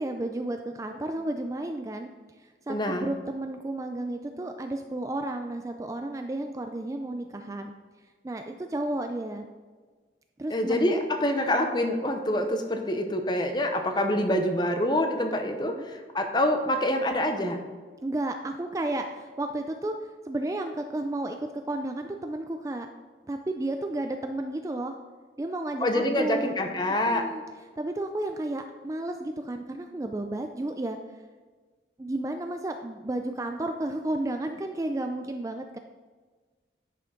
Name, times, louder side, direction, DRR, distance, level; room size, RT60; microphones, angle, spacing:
voice 1, 0.0-2.1 2.7-7.7 8.2-9.4 10.4-11.0 15.8-15.9 18.0-22.9 23.3-25.0 25.4-26.6 27.0-27.4 27.8-31.0 32.0-35.8, right 1 dB, 20° right, 5 dB, 0.3 m, -32 dB
voice 2, 2.7-3.1 10.5-17.6 25.8-27.3, left 1 dB, 25° left, 5 dB, 0.7 m, -26 dB
10.5 x 5.9 x 3.8 m, 1.4 s
head